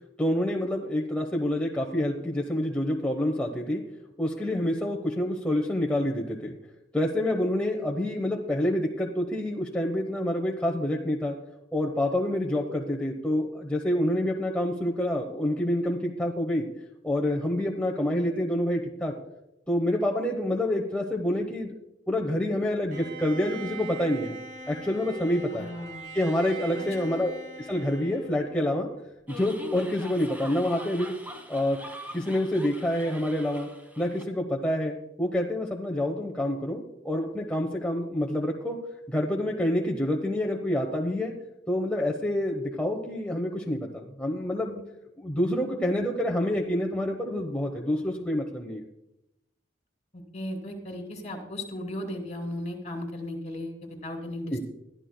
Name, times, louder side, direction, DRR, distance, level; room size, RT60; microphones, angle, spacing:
voice 1, 0.2-3.8 4.2-6.6 6.9-11.3 11.7-16.7 17.0-19.1 19.7-21.7 22.1-24.3 24.7-25.7 26.1-27.3 27.6-28.9 29.3-31.1 31.5-31.8 32.1-33.7 34.0-38.8 39.1-41.3 41.7-44.8 45.2-48.8 54.5-54.6, left 1 dB, 5° left, 0 dB, 0.9 m, -27 dB
Bowed string instrument, 22.9-29.0, right 2 dB, 45° right, 2.1 m, -42 dB
voice 2, 25.5-26.4 26.8-27.1 50.1-54.6, left 1 dB, 35° left, 2 dB, 2.9 m, -36 dB
sound 1, 29.3-34.2, equal, 10° right, 1.4 m, -43 dB
22.0 x 13.0 x 2.2 m, 0.88 s
head